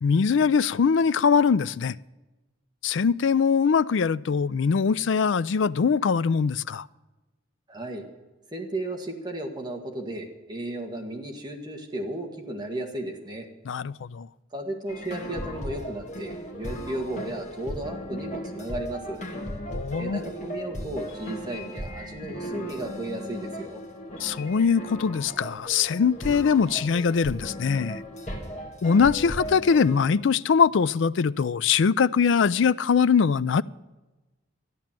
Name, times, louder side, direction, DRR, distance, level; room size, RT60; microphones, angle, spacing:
voice 1, 0.0-2.0 2.8-6.9 13.7-14.3 19.7-20.2 24.2-28.0 28.8-33.6, left 6 dB, 65° left, 0.4 m, -22 dB
voice 2, 7.7-8.0 8.5-13.5 14.5-19.2 20.0-23.8, right 1 dB, 20° right, 1.8 m, -34 dB
sound 1, 14.9-30.1, equal, 40° left, 2.0 m, -37 dB
13.5 x 10.5 x 7.5 m
head